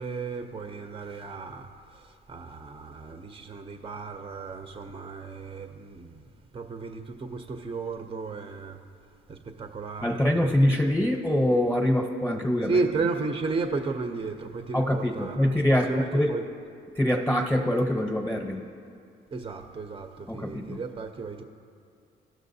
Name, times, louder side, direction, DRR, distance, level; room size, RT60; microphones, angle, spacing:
voice 1, 0.0-1.7 2.0-6.2 6.5-8.8 9.3-10.9 12.7-15.6 15.9-16.4 19.3-21.4, right 4 dB, 25° right, 6 dB, 0.6 m, -33 dB
voice 2, 10.0-12.8 14.7-16.3 17.0-18.6 20.3-20.8, left 1 dB, 10° left, 1 dB, 0.8 m, -24 dB
18.0 x 6.1 x 2.7 m, 2.4 s
cardioid pair, 90°, 20 cm